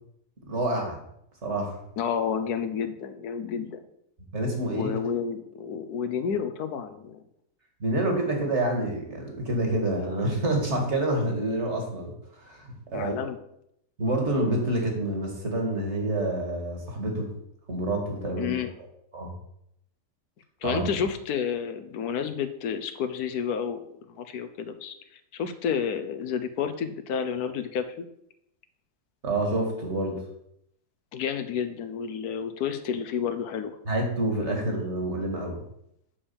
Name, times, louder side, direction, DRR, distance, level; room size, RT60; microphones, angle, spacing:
voice 1, 0.5-1.0 1.4-1.8 4.3-4.9 7.8-13.1 14.0-17.3 17.7-18.7 19.1-19.3 20.6-20.8 29.2-30.2 33.9-35.6, right 1 dB, 45° right, 1 dB, 2.2 m, -28 dB
voice 2, 2.0-3.8 4.7-7.2 12.9-13.4 18.4-18.7 20.6-24.9 25.3-28.1 31.1-33.8, left 7 dB, 75° left, 10 dB, 1.3 m, -30 dB
7.1 x 5.3 x 7.0 m, 0.76 s
omnidirectional pair, 1.7 m